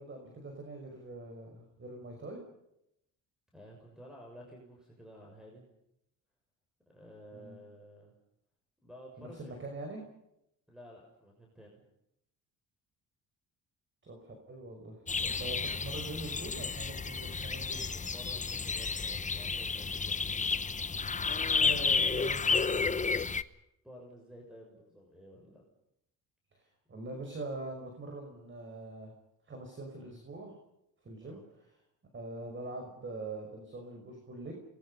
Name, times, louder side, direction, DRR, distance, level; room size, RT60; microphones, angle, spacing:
voice 1, 0.0-2.4 7.3-7.6 9.2-10.0 14.0-17.9 21.3-22.8 26.5-29.1 29.5-30.5 31.0-31.7 32.1-34.6, right 2 dB, 35° right, 3 dB, 5.7 m, -43 dB
voice 2, 3.5-5.6 6.9-8.1 8.8-9.7 10.7-11.8 17.9-20.3 23.8-25.6 31.2-31.5, equal, ahead, -1 dB, 6.5 m, -52 dB
sound 1, 15.1-23.4, left 5 dB, 20° left, 0.9 m, -31 dB
29.0 x 21.5 x 5.6 m, 0.80 s
cardioid pair, 100°, 34 cm